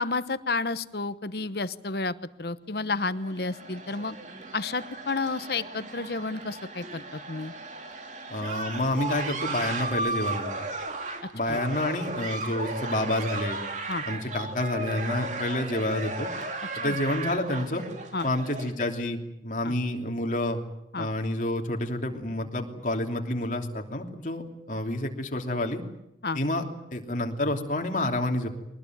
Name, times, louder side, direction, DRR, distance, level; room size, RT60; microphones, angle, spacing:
voice 1, 0.0-4.2 4.5-7.5 11.5-11.6 13.9-14.0 16.8-17.0 18.1-18.3 19.6-19.7 20.9-21.1 26.2-26.4, left 3 dB, 60° left, 14 dB, 1.0 m, -31 dB
sound 1, 3.1-18.7, right 3 dB, 40° right, 2.6 m, -35 dB
voice 2, 8.3-10.5 11.3-13.6 14.0-16.3 16.8-17.8 18.2-20.6 21.0-24.4 24.7-25.8 26.3-26.6 26.9-28.5, left 1 dB, 45° left, 3 dB, 3.0 m, -29 dB
23.0 x 19.5 x 9.3 m, 0.84 s
head